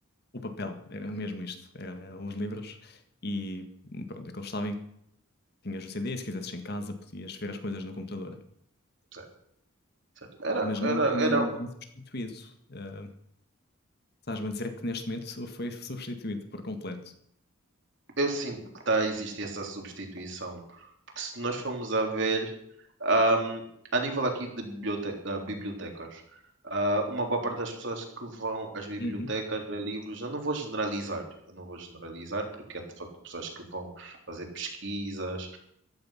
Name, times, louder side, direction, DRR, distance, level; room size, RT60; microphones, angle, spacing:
voice 1, 0.3-4.8 5.6-8.4 10.6-11.7 12.0-13.1 14.3-17.1 29.0-29.3, left 1 dB, 45° left, 7 dB, 1.8 m, -35 dB
voice 2, 10.4-11.5 18.2-18.6 18.9-20.9 21.2-22.5 23.0-23.6 23.9-26.4 26.6-31.2 31.5-35.6, right 2 dB, 55° right, 2 dB, 3.7 m, -31 dB
14.5 x 13.0 x 5.9 m, 0.71 s
head